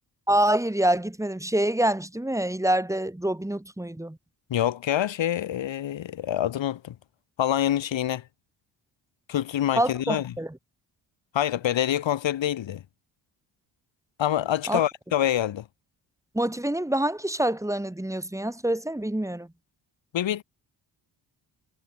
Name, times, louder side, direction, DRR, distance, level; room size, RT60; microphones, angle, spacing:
voice 1, 0.3-4.2 9.8-10.5 14.7-14.8 16.3-19.5, right 1 dB, 5° right, 7.5 m, -26 dB
voice 2, 4.5-7.0 7.4-8.2 9.3-10.3 11.3-12.8 14.2-15.6 20.1-20.4, left 11 dB, 85° left, 7.2 m, -26 dB
cardioid pair, 135°, 44 cm